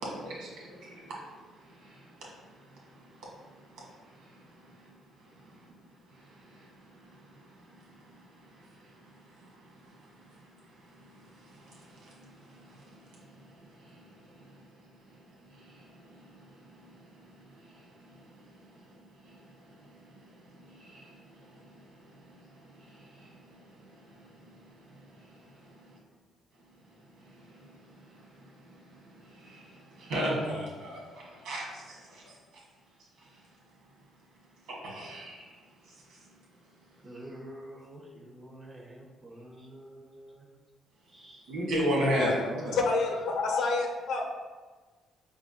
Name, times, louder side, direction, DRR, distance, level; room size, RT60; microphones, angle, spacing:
voice 1, 0.0-2.2 2.5-4.9 5.2-5.3 6.2-7.6 7.9-10.0 10.4-10.5 10.9-14.6 15.5-17.0 17.4-19.0 19.2-19.4 19.7-24.8 25.2-25.7 27.2-32.3 34.7-35.5 36.1-36.2 41.5-42.8, equal, 85° right, -4 dB, 1.4 m, -39 dB
voice 2, 37.0-40.5 41.1-41.5, right 1 dB, 30° right, -2 dB, 0.7 m, -48 dB
voice 3, 42.8-44.2, left 3 dB, 75° left, 1 dB, 0.7 m, -28 dB
5.1 x 3.5 x 2.2 m, 1.3 s
cardioid pair, 90°, 0 cm